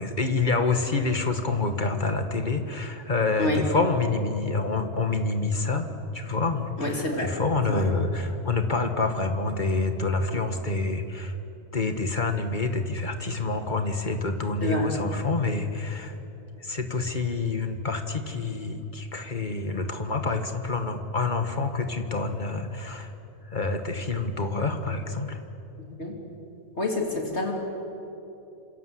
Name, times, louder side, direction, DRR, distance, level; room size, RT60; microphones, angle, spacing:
voice 1, 0.0-5.9 6.1-11.4 11.7-16.2 16.6-23.1 23.5-25.4, left 3 dB, 35° left, 6 dB, 2.0 m, -27 dB
voice 2, 6.8-7.3 7.7-7.8 14.6-14.9 26.0-26.1 26.8-27.5, left 1 dB, 55° left, 0 dB, 3.5 m, -27 dB
28.0 x 27.0 x 7.9 m, 2.9 s
omnidirectional pair, 1.4 m